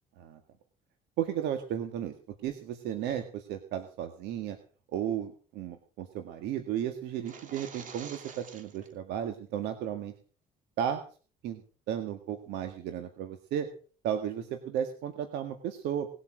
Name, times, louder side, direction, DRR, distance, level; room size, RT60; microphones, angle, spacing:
voice 1, 1.2-2.1 2.4-4.6 4.9-10.1 10.8-11.0 11.4-11.6 11.9-13.7 14.0-16.1, right 9 dB, 85° right, 7 dB, 1.9 m, -34 dB
sound 1, 7.1-8.9, right 6 dB, 50° right, 3.0 m, -47 dB
19.5 x 8.6 x 6.3 m, 0.40 s
cardioid pair, 110°, 17 cm